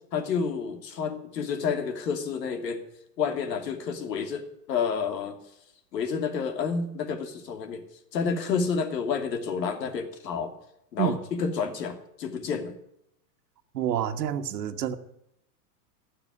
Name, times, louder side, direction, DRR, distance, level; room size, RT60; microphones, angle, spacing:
voice 1, 0.1-2.8 3.2-5.4 5.9-7.8 8.1-10.5 10.9-12.8, left 6 dB, 85° left, 6 dB, 2.8 m, -29 dB
voice 2, 13.7-15.0, right 10 dB, 85° right, 5 dB, 1.5 m, -28 dB
17.5 x 6.8 x 9.7 m, 0.79 s
supercardioid pair, 135°, 48 cm